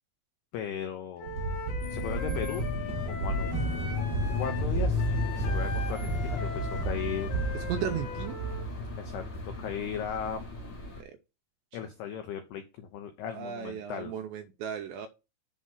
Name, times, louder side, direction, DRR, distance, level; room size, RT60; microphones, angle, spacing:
voice 1, 0.5-1.3 1.9-3.6 4.3-5.1 5.4-7.3 9.0-10.5 11.7-14.1, left 8 dB, 80° left, 2.3 m, -37 dB
Wind instrument woodwind instrument, 1.2-8.7, left 4 dB, 65° left, 4.1 m, -41 dB
sound 1, 1.2-8.5, right 2 dB, 25° right, 3.5 m, -34 dB
sound 2, 1.8-11.0, left 2 dB, 30° left, 3.7 m, -34 dB
voice 2, 7.5-8.3 11.0-11.2 13.3-15.1, right 8 dB, 85° right, 2.5 m, -35 dB
7.2 x 6.3 x 5.6 m
omnidirectional pair, 5.8 m